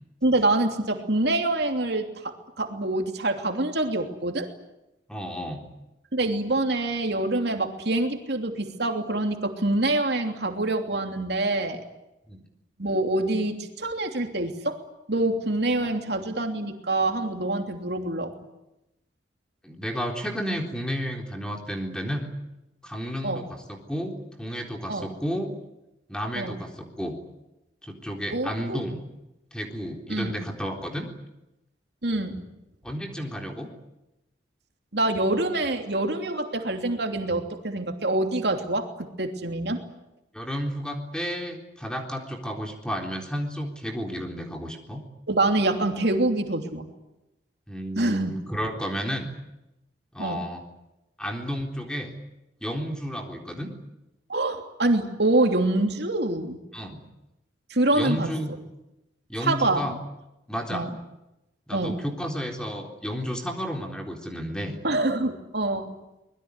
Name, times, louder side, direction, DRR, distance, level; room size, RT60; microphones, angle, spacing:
voice 1, 0.2-4.5 6.1-11.8 12.8-14.8 15.1-18.3 23.2-23.4 24.9-25.1 26.4-26.6 28.3-28.8 30.1-30.3 32.0-32.4 34.9-39.8 45.3-46.9 48.0-48.3 50.2-50.4 54.3-56.6 57.7-58.3 59.4-59.9 60.7-60.9 61.7-62.0 64.8-65.9, right 2 dB, 60° right, 4 dB, 3.1 m, -25 dB
voice 2, 5.1-5.7 12.3-12.4 15.8-15.9 19.6-22.3 22.8-25.5 26.1-27.2 27.8-29.0 29.5-31.1 32.8-33.7 40.3-45.0 47.7-49.3 50.1-50.6 51.2-52.1 52.6-53.7 56.7-57.0 57.9-58.5 59.3-60.0 60.5-60.9 61.7-64.8, equal, 5° left, 2 dB, 3.8 m, -32 dB
25.0 x 21.0 x 9.9 m, 0.91 s
head